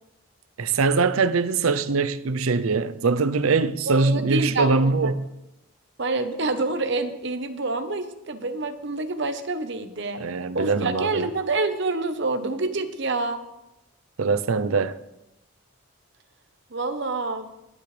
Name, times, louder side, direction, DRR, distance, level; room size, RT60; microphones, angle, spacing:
voice 1, 0.6-5.3 10.2-11.3 14.2-15.0, right 4 dB, 80° right, 0.6 m, -22 dB
voice 2, 3.9-5.1 6.0-10.2 10.5-13.4 16.7-17.5, right 3 dB, 55° right, 1.0 m, -27 dB
20.5 x 8.7 x 3.3 m
head